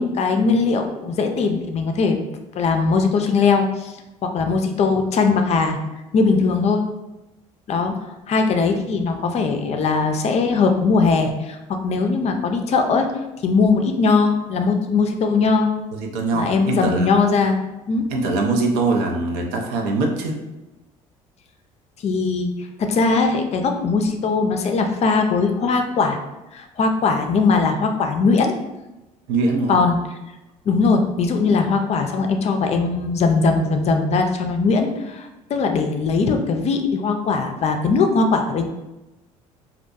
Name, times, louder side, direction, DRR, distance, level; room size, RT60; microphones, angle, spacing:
voice 1, 0.0-2.2 2.5-3.9 4.2-5.8 6.1-6.8 7.7-7.9 8.3-13.1 13.4-15.7 16.3-17.6 17.9-18.1 22.0-26.2 26.5-28.6 29.7-30.0 30.7-38.6, left 4 dB, 40° left, 5 dB, 0.4 m, -20 dB
voice 2, 15.9-17.1 18.1-20.4 29.3-29.8, right 3 dB, 65° right, 2 dB, 0.5 m, -22 dB
2.5 x 2.1 x 2.6 m, 1.0 s
hypercardioid pair, 60°, 17 cm